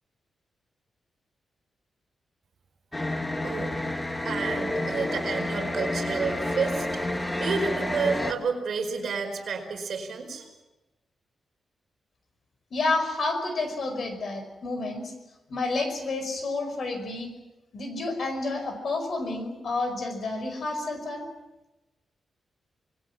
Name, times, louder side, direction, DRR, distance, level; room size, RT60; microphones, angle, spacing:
sound 1, 2.9-8.3, left 1 dB, 10° left, 1.4 m, -29 dB
voice 1, 3.4-3.8 4.2-10.5, right 5 dB, 60° right, 4 dB, 4.7 m, -30 dB
voice 2, 12.7-15.1 15.5-17.3 17.7-21.3, left 3 dB, 55° left, 7 dB, 5.1 m, -30 dB
27.0 x 21.0 x 6.2 m, 1.0 s
wide cardioid pair, 155°, 0 cm